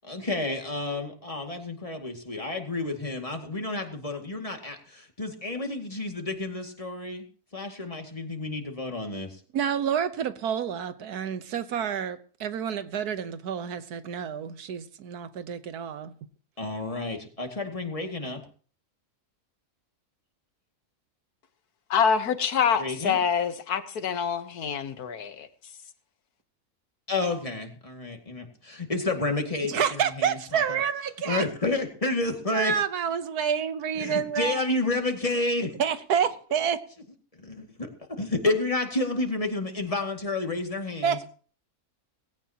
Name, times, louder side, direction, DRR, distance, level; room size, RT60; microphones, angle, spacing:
voice 1, 0.1-7.2 7.5-9.4 16.6-18.4 22.8-23.2 27.1-30.8 31.2-32.7 34.0-35.7 37.4-37.9 38.2-41.2, left 2 dB, 20° left, 2.2 m, -30 dB
voice 2, 9.5-16.1 29.7-31.4 32.5-34.7 35.8-36.8 41.0-41.3, right 8 dB, 85° right, 1.5 m, -28 dB
voice 3, 21.9-25.5, left 7 dB, 80° left, 1.7 m, -26 dB
18.5 x 16.5 x 2.9 m
omnidirectional pair, 1.6 m